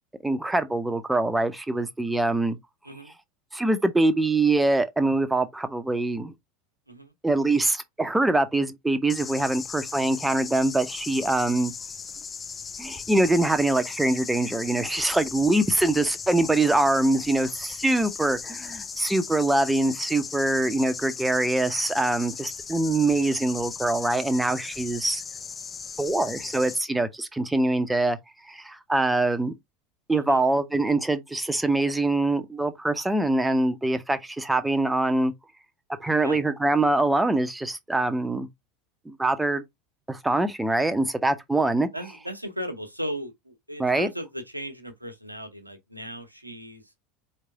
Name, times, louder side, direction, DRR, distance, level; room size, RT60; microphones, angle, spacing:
voice 1, 0.2-2.6 3.5-6.3 7.2-11.7 12.8-25.2 26.0-28.2 28.5-29.5 30.1-35.3 36.0-38.5 39.1-39.6 40.1-41.9 43.8-44.1, right 2 dB, 5° right, 0.8 m, -24 dB
sound 1, 9.1-26.8, left 6 dB, 25° left, 0.4 m, -37 dB
voice 2, 41.9-46.8, equal, 90° right, 1.0 m, -36 dB
4.5 x 3.3 x 3.5 m
figure-of-eight pair, 75°, 0 cm